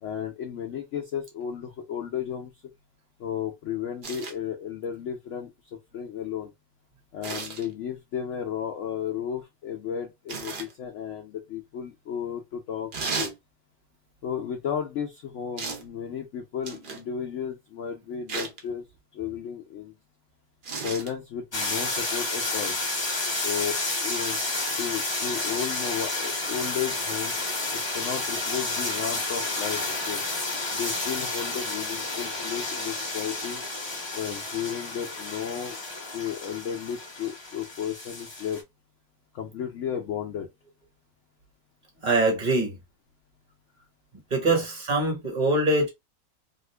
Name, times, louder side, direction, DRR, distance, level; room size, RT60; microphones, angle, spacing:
voice 1, 0.0-2.5 3.2-5.5 5.9-6.5 7.1-12.9 13.2-13.3 14.2-18.8 19.1-19.9 20.8-22.8 23.4-24.4 24.8-27.4 27.9-30.2 30.7-33.6 34.1-35.8 36.1-38.6 39.3-40.5 44.4-44.6, left 8 dB, 65° left, 0.7 m, -33 dB
sound 1, 4.0-4.4 7.2-7.7 10.3-10.7 12.9-13.4 15.6-15.9 16.6-17.1 18.3-18.6 20.6-21.1 22.5-22.6, right 4 dB, 70° right, 0.4 m, -34 dB
sound 2, 21.5-38.6, left 2 dB, 30° left, 0.5 m, -31 dB
voice 2, 42.0-42.8 44.3-45.9, right 2 dB, 30° right, 0.9 m, -23 dB
2.8 x 2.5 x 3.2 m
omnidirectional pair, 1.8 m